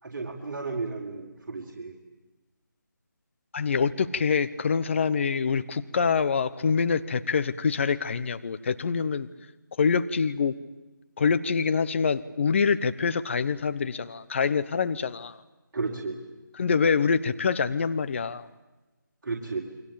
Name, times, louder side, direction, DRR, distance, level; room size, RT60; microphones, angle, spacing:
voice 1, 0.0-1.9 15.7-16.2 19.2-19.6, right 4 dB, 50° right, -2 dB, 4.6 m, -33 dB
voice 2, 3.5-9.3 9.8-10.5 11.2-15.4 16.6-18.5, left 5 dB, 35° left, 13 dB, 1.1 m, -25 dB
29.0 x 23.5 x 8.8 m, 1.1 s
figure-of-eight pair, 160°, 11 cm